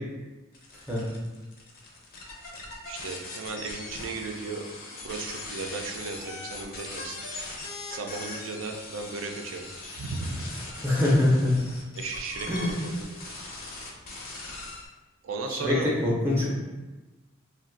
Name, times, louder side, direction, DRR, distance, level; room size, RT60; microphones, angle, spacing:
sound 1, 0.5-14.9, left 2 dB, 45° left, 0.5 m, -40 dB
voice 1, 2.9-7.2 7.9-9.7 10.0-10.4 12.0-13.1 15.2-16.0, right 3 dB, 75° right, 3 dB, 0.4 m, -35 dB
voice 2, 10.8-11.6 12.5-12.7 15.5-16.5, left 1 dB, 10° right, -5 dB, 0.5 m, -23 dB
2.5 x 2.2 x 3.7 m, 1.2 s
head